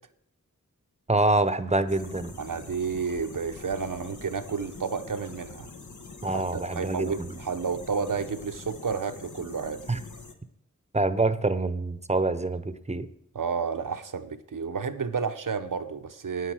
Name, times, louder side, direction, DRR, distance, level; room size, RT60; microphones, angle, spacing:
voice 1, 1.1-2.3 6.2-7.4 9.9-10.0 10.9-13.1, right 2 dB, 20° right, 0.8 m, -26 dB
sound 1, 1.9-10.3, left 4 dB, 65° left, 1.3 m, -45 dB
voice 2, 2.4-5.7 6.3-9.9 13.3-16.5, right 5 dB, 85° right, 0.9 m, -31 dB
9.5 x 9.2 x 6.3 m
wide cardioid pair, 55°, 32 cm